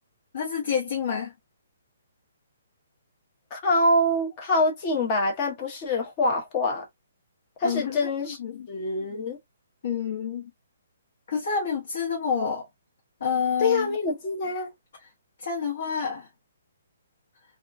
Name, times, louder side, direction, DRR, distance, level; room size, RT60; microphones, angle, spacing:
voice 1, 0.3-1.3 7.6-8.0 8.4-8.7 9.8-10.5 11.3-12.7 13.2-14.0 15.4-16.3, left 6 dB, 55° left, 1.0 m, -28 dB
voice 2, 3.5-6.9 7.6-8.4 8.7-9.4 13.6-14.7, left 2 dB, 25° left, 0.7 m, -25 dB
2.3 x 2.2 x 2.4 m
hypercardioid pair, 170°, 0 cm